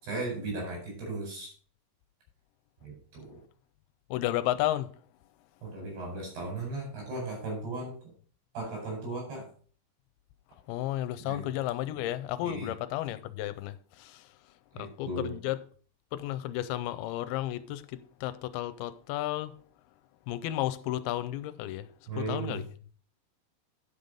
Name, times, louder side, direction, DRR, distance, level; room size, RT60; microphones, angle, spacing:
voice 1, 0.0-1.5 2.8-3.4 5.6-7.9 8.5-9.5 11.2-11.5 12.4-12.7 14.8-15.3 22.1-22.6, right 2 dB, 80° right, 6.7 m, -36 dB
voice 2, 4.1-4.9 10.7-13.7 14.0-14.1 14.8-15.6 16.1-19.5 20.3-21.9 22.2-22.6, left 14 dB, 85° left, 2.5 m, -32 dB
10.0 x 5.5 x 5.1 m
omnidirectional pair, 4.6 m